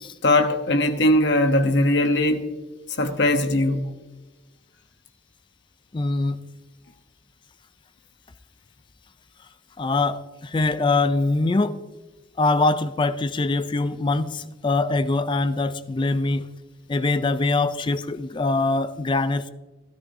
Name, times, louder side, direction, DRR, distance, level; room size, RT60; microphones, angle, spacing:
voice 1, 0.2-2.4 3.0-3.8, left 1 dB, 60° left, 0.9 m, -20 dB
voice 2, 5.9-6.4 9.8-11.8 12.4-16.5 16.9-19.5, left 3 dB, 25° left, 0.4 m, -23 dB
13.0 x 13.0 x 2.7 m
head